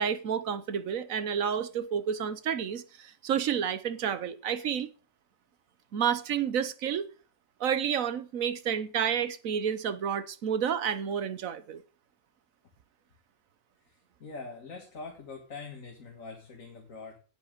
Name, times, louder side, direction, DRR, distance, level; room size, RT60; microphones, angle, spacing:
voice 1, 0.0-4.9 5.9-7.0 7.6-11.8, right 8 dB, 90° right, 1.4 m, -30 dB
voice 2, 13.8-17.2, left 4 dB, 80° left, 2.3 m, -44 dB
9.6 x 8.7 x 6.6 m
omnidirectional pair, 1.4 m